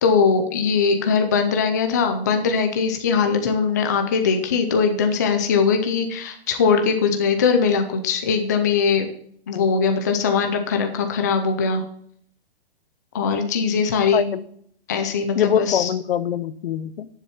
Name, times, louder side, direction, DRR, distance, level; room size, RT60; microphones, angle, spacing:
voice 1, 0.0-9.1 9.5-11.8 13.1-14.3 14.9-15.9, left 5 dB, 15° left, 5 dB, 0.4 m, -21 dB
voice 2, 15.4-17.1, left 9 dB, 60° left, 16 dB, 0.8 m, -23 dB
10.0 x 7.3 x 5.7 m, 0.64 s
hypercardioid pair, 180°, 32 cm